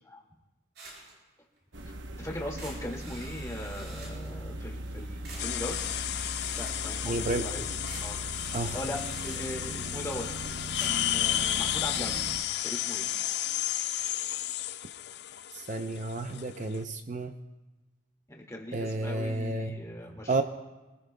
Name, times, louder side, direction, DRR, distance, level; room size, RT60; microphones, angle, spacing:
sound 1, 0.8-1.2 1.6-1.7 2.0-2.1 2.6-4.3 5.0-5.1 5.2-7.0 7.5-7.6 7.9-9.6 10.5-12.3, right 2 dB, 65° right, 6.0 m, -48 dB
sound 2, 1.7-12.4, right 1 dB, 80° right, 0.9 m, -40 dB
voice 1, 2.2-5.8 6.6-7.7 8.0-8.2 8.6-10.3 10.8-13.1 18.3-20.4, left 1 dB, 15° left, -1 dB, 1.9 m, -39 dB
sound 3, 5.4-16.8, left 13 dB, 60° left, 0.4 m, -33 dB
voice 2, 7.0-7.5 8.5-8.8 15.5-17.3 18.7-19.8 20.3-20.4, right 2 dB, 40° right, 7 dB, 0.6 m, -31 dB
26.0 x 20.0 x 2.2 m, 1.1 s
head